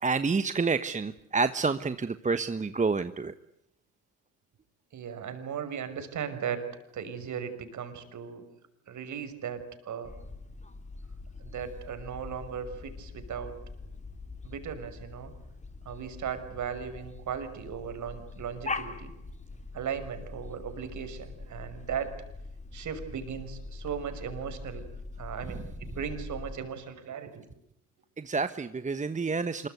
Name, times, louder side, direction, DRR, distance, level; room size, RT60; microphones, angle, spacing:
voice 1, 0.0-3.3 28.2-29.7, right 4 dB, 20° right, 12 dB, 1.3 m, -28 dB
voice 2, 4.9-8.5 8.9-10.1 11.4-13.6 14.4-15.3 15.9-19.2 19.7-22.2 22.7-27.4, right 7 dB, 45° right, 9 dB, 6.0 m, -37 dB
sound 1, 10.0-26.6, left 3 dB, 15° left, 3.4 m, -43 dB
26.5 x 23.0 x 8.2 m, 0.80 s
hypercardioid pair, 70°, 40 cm